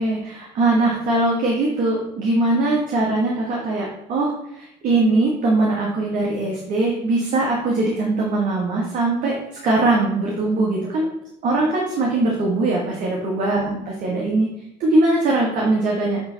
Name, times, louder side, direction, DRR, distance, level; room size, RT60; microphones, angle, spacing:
voice 1, 0.0-9.4 9.6-11.0 11.4-14.5 14.8-16.2, right 2 dB, 55° right, -2 dB, 1.3 m, -21 dB
7.9 x 3.3 x 3.9 m, 0.79 s
cardioid pair, 95°, 16 cm